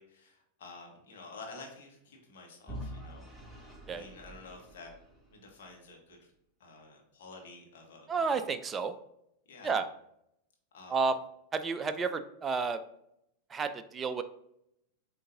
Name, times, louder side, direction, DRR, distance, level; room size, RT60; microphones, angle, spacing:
voice 1, 0.0-4.9 5.3-6.3 6.6-8.4 9.5-9.8 10.7-11.0, left 3 dB, 55° left, 1 dB, 1.1 m, -50 dB
Vehicle / Engine, 2.7-5.7, equal, 5° right, 0.9 m, -46 dB
voice 2, 8.1-8.9 9.6-9.8 10.9-11.1 11.5-12.8 13.5-14.2, right 5 dB, 20° right, 10 dB, 0.3 m, -31 dB
7.4 x 2.6 x 2.6 m, 0.76 s
figure-of-eight pair, 90°, 0 cm